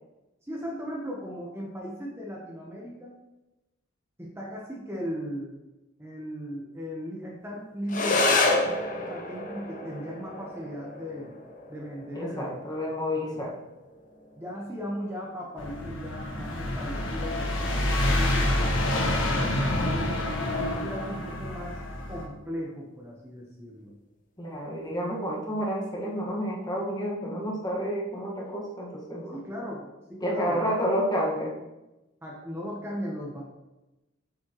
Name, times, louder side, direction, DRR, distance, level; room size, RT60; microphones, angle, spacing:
voice 1, 0.4-3.1 4.2-5.5 6.0-8.6 9.1-11.3 11.7-12.6 13.3-13.4 14.4-18.7 19.0-20.3 20.7-21.8 22.1-24.0 29.3-30.7 32.2-33.4, equal, 10° right, -3 dB, 1.0 m, -37 dB
sound 1, 7.9-16.9, left 2 dB, 40° left, 1.0 m, -31 dB
voice 2, 12.1-13.6 24.4-29.4 30.2-31.5, equal, 20° left, -3 dB, 1.6 m, -30 dB
sound 2, 15.6-22.2, left 1 dB, 85° left, 1.5 m, -27 dB
7.7 x 7.2 x 3.1 m, 1.0 s
head